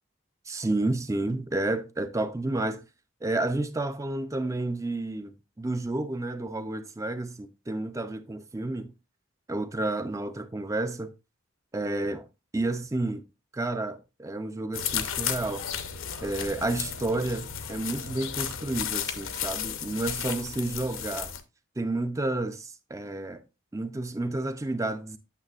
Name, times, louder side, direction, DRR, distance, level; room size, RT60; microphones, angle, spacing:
voice 1, 0.5-2.8 3.2-8.9 9.5-11.1 11.7-12.2 12.5-13.2 13.5-15.7 16.2-21.3 21.8-23.4 23.7-25.2, right 2 dB, 15° right, 0.4 m, -30 dB
sound 1, 14.7-21.4, left 8 dB, 75° left, 0.8 m, -34 dB
9.0 x 6.5 x 2.4 m
head